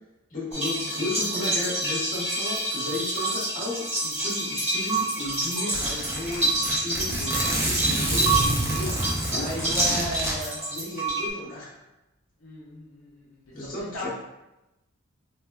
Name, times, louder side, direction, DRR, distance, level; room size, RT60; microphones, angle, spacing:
voice 1, 0.3-10.1 10.4-11.8 13.5-14.1, left 2 dB, 40° left, -6 dB, 0.8 m, -35 dB
sound 1, 0.5-11.3, right 2 dB, 30° right, 0.9 m, -28 dB
Zipper (clothing), 4.9-5.0 5.3-5.4 5.7-10.3, right 1 dB, 10° right, 0.3 m, -28 dB
voice 2, 9.3-11.2 12.4-14.1, equal, 70° left, -6 dB, 0.6 m, -36 dB
3.1 x 2.1 x 2.3 m, 0.96 s
head